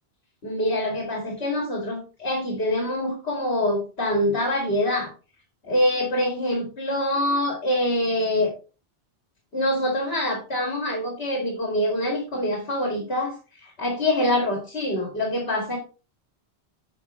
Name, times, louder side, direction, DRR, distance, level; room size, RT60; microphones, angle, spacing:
voice 1, 0.4-5.1 5.6-8.5 9.5-15.8, left 1 dB, 70° left, 0 dB, 2.4 m, -25 dB
8.7 x 5.7 x 3.0 m, 0.32 s
omnidirectional pair, 1.1 m